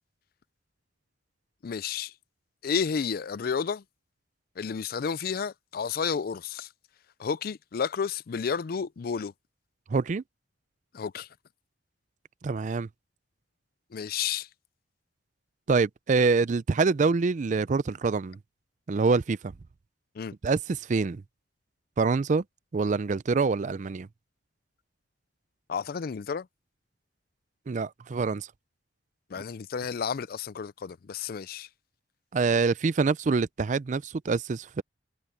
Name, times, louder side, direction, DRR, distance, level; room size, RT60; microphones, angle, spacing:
voice 1, 1.6-2.1 2.6-3.8 4.6-6.7 7.2-9.3 10.9-11.3 13.9-14.5 20.2-20.3 25.7-26.5 29.3-31.7, left 6 dB, 55° left, 0.4 m, -31 dB
voice 2, 9.9-10.2 12.4-12.9 15.7-18.4 18.9-19.5 20.4-21.2 22.0-22.4 22.7-24.1 27.7-28.5 32.3-34.8, right 4 dB, 45° right, 0.4 m, -25 dB
head